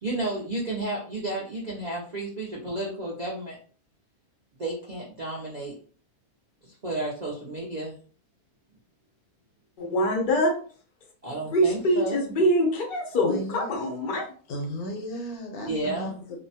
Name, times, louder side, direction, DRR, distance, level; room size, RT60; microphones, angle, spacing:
voice 1, 0.0-3.6 4.6-5.7 6.6-7.9 11.2-12.2 15.7-16.1, right 2 dB, 60° right, -5 dB, 0.4 m, -32 dB
voice 2, 9.8-10.5 11.5-14.3, equal, 60° left, 1 dB, 0.5 m, -24 dB
voice 3, 13.2-13.7 14.5-16.4, equal, 80° left, 2 dB, 1.3 m, -34 dB
2.7 x 2.1 x 2.7 m, 0.42 s
omnidirectional pair, 1.6 m